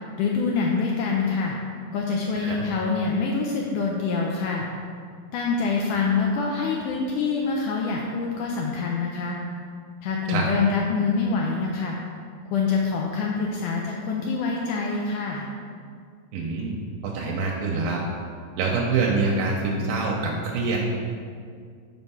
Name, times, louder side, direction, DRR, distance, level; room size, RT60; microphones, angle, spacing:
voice 1, 0.2-1.5 1.9-4.6 5.3-9.4 10.0-12.0 12.5-15.5, left 4 dB, 80° left, -1 dB, 1.9 m, -25 dB
voice 2, 16.3-16.8 17.0-18.0 18.6-20.8, right 4 dB, 80° right, -1 dB, 2.3 m, -25 dB
5.7 x 4.5 x 5.4 m, 2.2 s
omnidirectional pair, 4.0 m